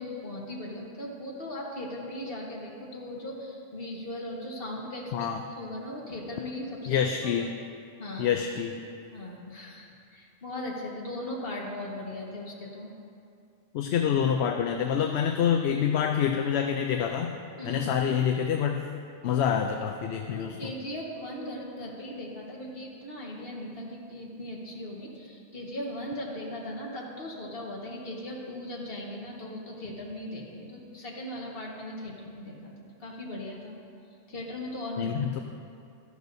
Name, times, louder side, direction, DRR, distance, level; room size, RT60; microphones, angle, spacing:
voice 1, 0.0-5.3 5.6-7.5 8.0-8.3 9.1-12.9 17.6-17.8 20.3-32.7 33.0-33.8 34.3-35.1, left 1 dB, 55° left, -3 dB, 1.7 m, -38 dB
voice 2, 6.9-7.5 8.2-8.8 13.7-17.3 17.6-18.8 19.2-20.6 35.0-35.4, left 8 dB, 70° left, 4 dB, 0.8 m, -26 dB
13.5 x 11.0 x 2.7 m, 2.4 s
omnidirectional pair, 1.2 m